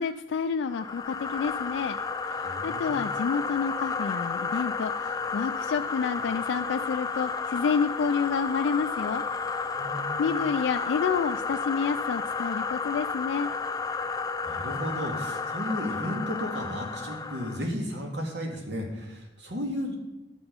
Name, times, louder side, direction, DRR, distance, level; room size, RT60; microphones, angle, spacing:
voice 1, 0.0-2.0 2.3-9.2 10.2-13.5, left 6 dB, 90° left, 8 dB, 0.3 m, -29 dB
sound 1, 0.7-17.7, left 4 dB, 20° left, 0.4 m, -32 dB
voice 2, 2.4-3.0 9.8-10.4 14.4-19.9, equal, 75° right, 1 dB, 2.1 m, -34 dB
11.0 x 6.0 x 5.2 m, 0.98 s
head